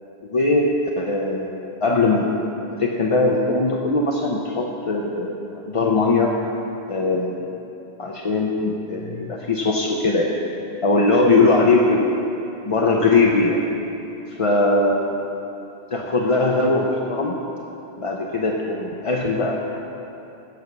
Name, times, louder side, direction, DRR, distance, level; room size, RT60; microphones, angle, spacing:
voice 1, 0.2-2.3 2.8-5.4 5.7-6.3 6.9-7.4 8.0-10.3 10.8-12.1 12.6-13.6 14.3-15.2 15.9-17.4 18.0-19.6, left 3 dB, 35° left, -1 dB, 0.6 m, -20 dB
16.0 x 5.9 x 6.1 m, 3.0 s
omnidirectional pair, 1.2 m